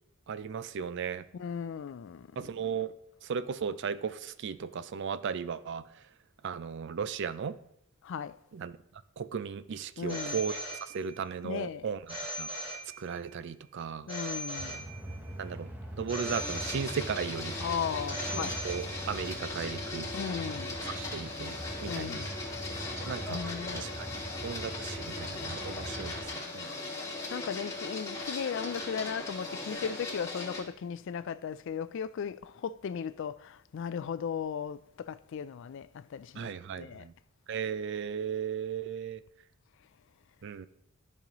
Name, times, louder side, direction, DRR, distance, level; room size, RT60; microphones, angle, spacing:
voice 1, 0.3-1.2 2.4-2.9 3.2-5.8 6.4-7.6 8.5-8.8 9.2-12.5 13.0-14.1 15.4-15.7 15.9-17.5 18.3-20.1 20.8-21.6 21.8-22.2 23.0-23.4 23.7-24.1 24.4-26.7 36.4-37.1 37.5-39.2 40.4-40.7, right 6 dB, 55° right, 0.4 m, -36 dB
voice 2, 1.3-2.5 8.0-8.3 10.0-10.4 11.4-11.9 14.1-14.9 17.6-18.6 20.1-20.8 21.9-22.3 23.3-23.9 27.3-37.1, left 7 dB, 60° left, 0.3 m, -36 dB
Telephone, 10.1-11.3 12.1-13.3 14.1-15.3 16.1-17.3 18.1-19.3, equal, 25° right, 1.6 m, -40 dB
sound 1, 14.6-26.2, right 1 dB, 10° right, 0.8 m, -42 dB
Printer, 16.2-30.6, left 2 dB, 15° left, 2.1 m, -38 dB
13.0 x 5.4 x 3.0 m
head